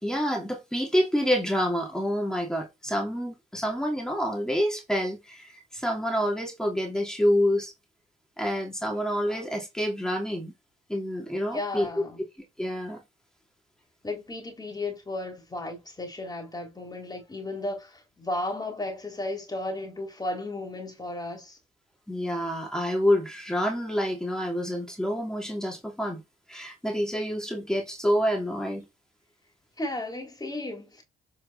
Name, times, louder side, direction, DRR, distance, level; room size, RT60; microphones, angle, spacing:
voice 1, 0.0-7.7 8.4-10.5 10.9-11.9 12.6-13.0 22.1-26.2 26.5-28.9, equal, 5° left, 3.0 m, -27 dB
voice 2, 11.5-12.2 14.0-21.6 29.8-31.0, left 2 dB, 20° left, 3.5 m, -34 dB
8.0 x 4.7 x 4.3 m
cardioid pair, 90°, 20 cm